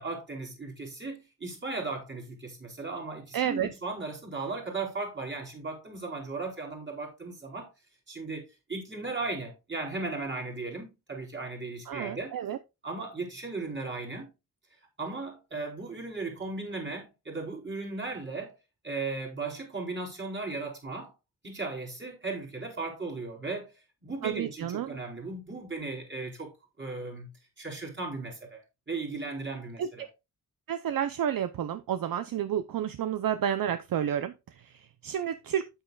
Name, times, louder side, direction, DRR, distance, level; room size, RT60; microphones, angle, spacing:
voice 1, 0.0-7.7 8.1-12.4 12.8-14.3 15.0-18.6 18.8-21.1 21.4-27.3 27.6-30.0, right 3 dB, 30° right, 4.4 m, -36 dB
voice 2, 3.3-3.7 11.9-12.6 24.2-25.0 29.8-29.9 30.7-35.7, right 9 dB, 65° right, 0.6 m, -30 dB
9.1 x 8.9 x 2.3 m
wide cardioid pair, 135°, 37 cm